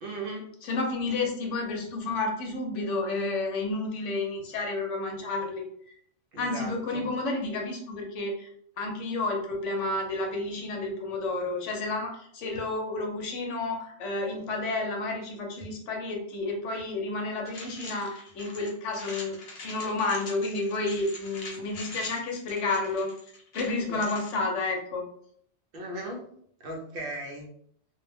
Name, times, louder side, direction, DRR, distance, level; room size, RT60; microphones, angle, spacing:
voice 1, 0.0-0.5 6.3-7.1 23.9-24.0 25.7-26.2 26.6-27.5, right 1 dB, 55° right, 1 dB, 0.7 m, -37 dB
voice 2, 0.6-5.7 6.4-8.5 8.8-19.4 19.6-23.1 23.5-25.0, left 2 dB, 75° left, 1 dB, 1.0 m, -31 dB
sound 1, 17.4-24.3, left 3 dB, 55° left, 0.7 m, -43 dB
2.5 x 2.1 x 3.1 m, 0.64 s
omnidirectional pair, 1.3 m